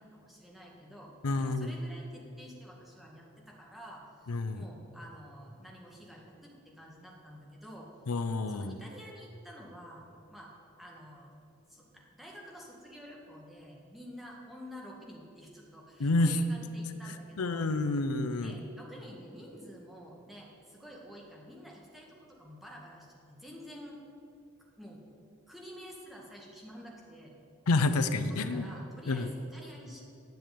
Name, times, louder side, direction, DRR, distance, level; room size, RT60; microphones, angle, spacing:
voice 1, 0.0-7.9 8.5-10.0 10.3-11.3 11.7-17.7 18.4-24.0 24.8-25.0 25.5-27.3 28.2-30.0, equal, ahead, -3 dB, 1.8 m, -49 dB
voice 2, 1.2-1.8 4.3-4.6 8.1-8.8 16.0-16.4 17.4-18.5 27.7-28.7 29.1-29.3, left 3 dB, 85° left, 10 dB, 0.6 m, -29 dB
10.5 x 6.9 x 9.3 m, 2.7 s
head